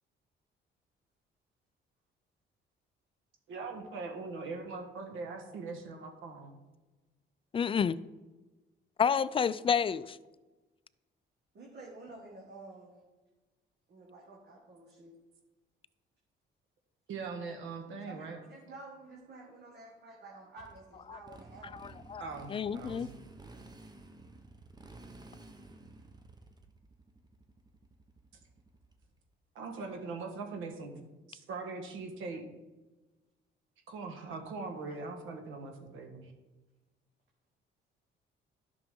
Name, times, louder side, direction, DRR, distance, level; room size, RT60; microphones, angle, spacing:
voice 1, 3.5-6.6 17.1-18.4 22.2-23.1 29.5-30.9 31.3-32.5 33.9-36.3, right 4 dB, 85° right, 4 dB, 1.5 m, -41 dB
voice 2, 7.5-8.0 9.0-10.2 22.1-22.2 22.5-23.1, left 7 dB, 25° left, 16 dB, 0.3 m, -29 dB
voice 3, 11.5-13.0 13.9-15.2 17.9-21.7, right 2 dB, 55° right, -2 dB, 1.8 m, -51 dB
Motorcycle, 20.6-29.2, right 2 dB, 20° right, 0.9 m, -53 dB
11.5 x 6.1 x 3.7 m, 1.2 s
cardioid pair, 90°, 20 cm